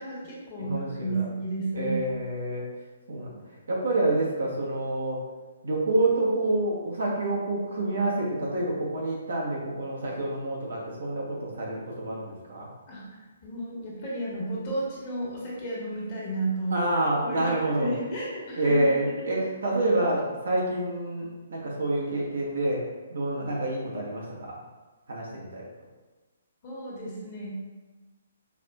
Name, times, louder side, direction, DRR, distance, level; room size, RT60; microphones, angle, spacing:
voice 1, 0.0-2.0 12.9-16.8 17.2-18.9 26.6-27.5, right 2 dB, 40° left, -5 dB, 1.2 m, -33 dB
voice 2, 0.6-1.3 1.7-2.6 3.1-3.4 3.7-5.2 5.6-12.7 16.7-18.0 18.6-22.8 23.1-24.6 25.1-25.6, right 2 dB, 65° right, -3 dB, 1.0 m, -27 dB
4.8 x 2.5 x 2.3 m, 1.2 s
figure-of-eight pair, 130°, 0 cm